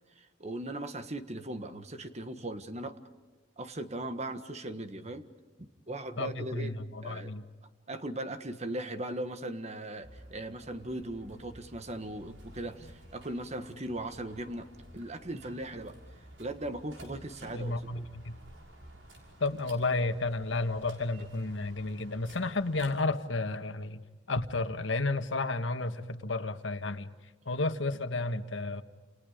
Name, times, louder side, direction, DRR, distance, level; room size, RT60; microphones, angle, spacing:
voice 1, 0.2-3.0 3.6-5.2 5.6-6.8 7.0-7.3 7.9-14.7 14.9-16.0 16.4-18.0, right 1 dB, 35° right, 9 dB, 1.6 m, -38 dB
voice 2, 6.2-7.5 17.5-18.3 19.4-24.0 24.3-27.1 27.4-28.8, left 2 dB, 80° left, 8 dB, 1.6 m, -32 dB
sound 1, 10.0-23.0, right 1 dB, 75° right, 5.9 m, -53 dB
30.0 x 29.0 x 5.1 m, 1.3 s
head